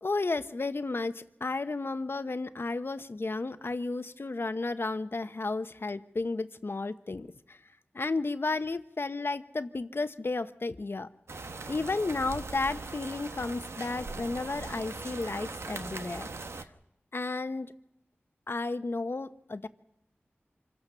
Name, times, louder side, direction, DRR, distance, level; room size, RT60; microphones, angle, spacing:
voice 1, 0.0-7.6 7.9-11.1 11.7-16.3 16.6-16.7 17.1-17.7 18.5-19.7, left 3 dB, 60° left, 11 dB, 0.9 m, -33 dB
sound 1, 11.3-16.6, right 3 dB, 85° right, 1.0 m, -40 dB
26.0 x 17.0 x 6.9 m, 0.86 s
wide cardioid pair, 50°, 4 cm